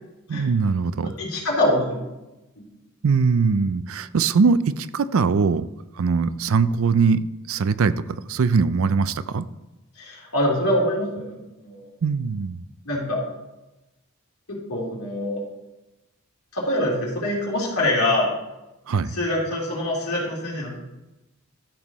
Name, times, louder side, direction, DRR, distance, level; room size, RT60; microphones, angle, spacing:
voice 1, 0.3-1.1 3.0-5.7 6.0-7.9 8.3-9.4 12.0-12.6 18.9-19.2, right 5 dB, 70° right, 15 dB, 0.4 m, -21 dB
voice 2, 1.0-2.0 10.0-11.9 12.9-13.2 14.5-15.4 16.5-18.3 19.1-20.8, left 1 dB, 80° left, -4 dB, 3.5 m, -24 dB
13.5 x 7.4 x 3.0 m, 0.98 s
head